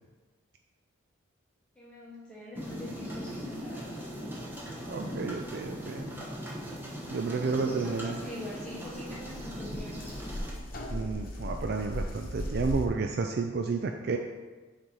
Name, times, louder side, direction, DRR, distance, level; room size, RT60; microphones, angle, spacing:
voice 1, 1.7-4.1 7.3-10.1, equal, 5° left, -7 dB, 1.2 m, -44 dB
sound 1, 2.5-10.5, equal, 10° right, 1.0 m, -39 dB
voice 2, 4.9-6.1 7.1-8.2 10.9-14.2, right 4 dB, 50° right, 4 dB, 0.3 m, -31 dB
sound 2, 8.4-8.5 8.7-12.9, left 1 dB, 45° left, 0.8 m, -37 dB
6.4 x 4.1 x 4.7 m, 1.3 s
head